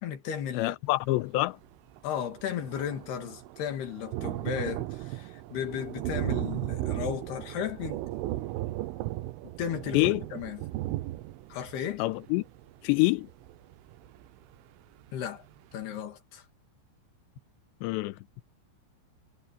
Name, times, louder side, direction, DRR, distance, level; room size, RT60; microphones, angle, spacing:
voice 1, 0.0-0.8 2.0-8.0 9.6-10.6 11.5-12.0 15.1-15.5 15.7-16.4, left 8 dB, 60° left, 4.1 m, -35 dB
voice 2, 0.5-1.6 9.9-10.2 12.0-12.4 12.8-13.3 17.8-18.2, left 20 dB, 85° left, 2.6 m, -26 dB
Thunder, 1.6-1.7 2.0-14.6 15.1-15.2 15.5-15.6, right 16 dB, 90° right, 3.5 m, -36 dB
omnidirectional pair, 5.6 m